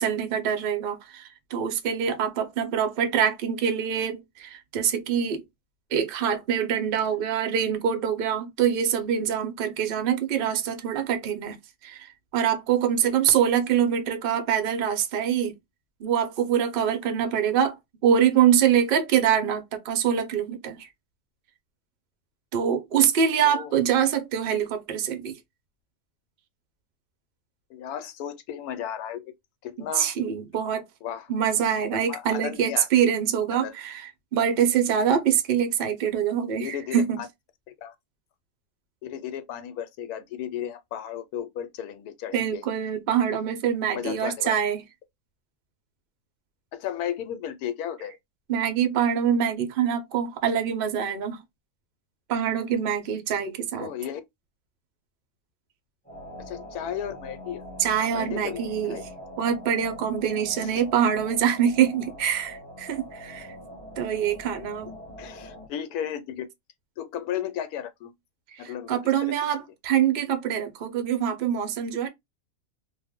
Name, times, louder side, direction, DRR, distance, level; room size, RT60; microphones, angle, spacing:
voice 1, 0.0-5.4 5.9-15.5 16.0-17.8 18.0-20.9 22.5-25.3 29.8-30.8 31.3-37.2 42.3-44.8 48.5-51.4 52.3-53.9 57.8-59.0 59.4-63.5 64.0-64.9 68.5-72.1, right 8 dB, 55° right, 0.6 m, -24 dB
voice 2, 27.7-29.3 29.6-30.1 31.0-31.3 32.1-32.9 33.5-33.8 36.5-37.3 37.8-37.9 39.0-42.6 43.9-44.5 46.7-48.2 53.8-54.2 56.4-57.6 58.1-59.1 60.6-60.7 65.2-66.5 67.0-68.1 68.6-69.3, left 10 dB, 85° left, 1.1 m, -34 dB
sound 1, 56.0-65.7, equal, 5° left, 0.6 m, -43 dB
2.5 x 2.1 x 3.4 m
omnidirectional pair, 1.6 m